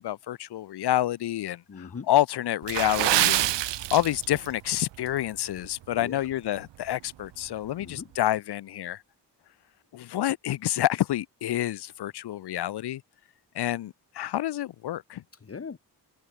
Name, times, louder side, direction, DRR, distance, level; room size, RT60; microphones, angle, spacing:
voice 1, 0.0-9.0 9.9-13.0 13.6-15.2, left 13 dB, 70° left, 0.6 m, -28 dB
voice 2, 1.7-2.1 6.0-6.3 7.8-8.1 15.3-15.8, left 5 dB, 35° left, 1.5 m, -40 dB
Water / Splash splatter, 2.6-4.5 4.8-5.1 5.6-5.8 6.3-6.4, right 15 dB, 85° right, 0.6 m, -26 dB
wide cardioid pair, 120°, 42 cm